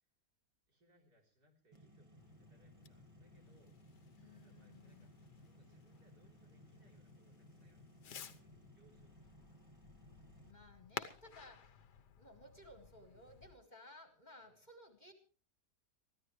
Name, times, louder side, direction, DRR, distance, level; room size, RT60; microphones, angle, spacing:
voice 1, 0.7-5.1 5.4-9.5 14.4-14.6, right 2 dB, 70° right, 1 dB, 4.3 m, -73 dB
sound 1, 1.7-10.5, right 1 dB, 20° right, 1.8 m, -62 dB
Fireworks, 2.2-13.5, left 8 dB, 85° left, 1.6 m, -55 dB
voice 2, 4.2-5.2 10.4-15.1, left 1 dB, 25° left, 6 dB, 2.1 m, -59 dB
23.5 x 15.0 x 3.2 m, 0.35 s
omnidirectional pair, 1.7 m